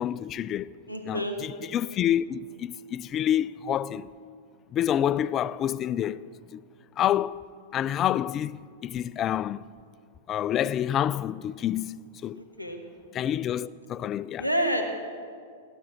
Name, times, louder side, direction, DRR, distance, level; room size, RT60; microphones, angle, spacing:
voice 1, 0.0-0.7 1.0-4.1 4.7-6.6 7.0-7.4 7.7-9.6 10.3-12.4 13.1-14.5, left 10 dB, 25° left, 0.3 m, -28 dB
voice 2, 0.9-1.4 12.4-12.8 14.4-14.8, equal, 85° right, 1.5 m, -28 dB
18.0 x 9.8 x 6.2 m
figure-of-eight pair, 100°, 0 cm